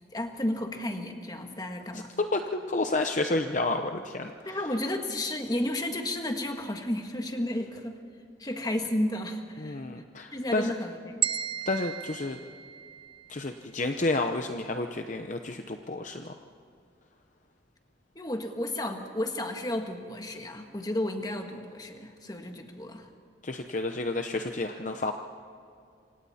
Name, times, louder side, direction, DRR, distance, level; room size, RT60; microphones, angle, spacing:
voice 1, 0.1-2.1 4.4-8.0 8.4-9.8 10.3-11.2 18.1-23.1, left 1 dB, 20° left, 4 dB, 1.7 m, -32 dB
voice 2, 2.2-4.6 9.6-10.7 11.7-12.4 13.3-16.3 23.4-25.1, left 2 dB, 40° left, 6 dB, 0.8 m, -30 dB
sound 1, 11.2-13.4, right 9 dB, 30° right, 0.6 m, -34 dB
27.5 x 25.5 x 4.3 m, 2.4 s
head